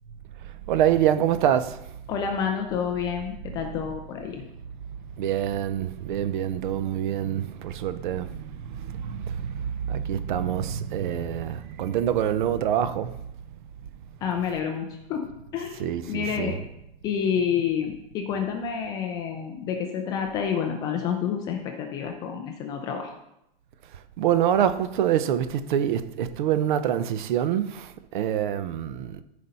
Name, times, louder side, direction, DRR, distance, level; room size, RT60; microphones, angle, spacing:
voice 1, 0.7-1.8 5.2-13.1 15.8-16.6 24.2-29.2, right 10 dB, 55° right, 0.7 m, -26 dB
voice 2, 2.1-4.4 14.2-15.3 15.5-16.6 17.0-23.2, left 7 dB, 15° left, 0.4 m, -29 dB
14.0 x 5.2 x 4.1 m
supercardioid pair, 160°, 30 cm